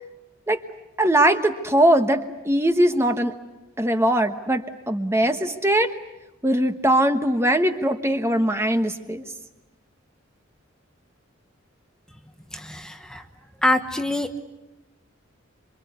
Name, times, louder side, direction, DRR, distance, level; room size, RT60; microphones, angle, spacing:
voice 1, 1.0-3.3 3.8-5.9 6.4-9.2, right 1 dB, 15° right, 8 dB, 1.2 m, -21 dB
voice 2, 12.5-13.2 13.6-14.4, left 1 dB, 5° left, 7 dB, 1.1 m, -25 dB
27.0 x 25.0 x 8.4 m, 1.0 s
head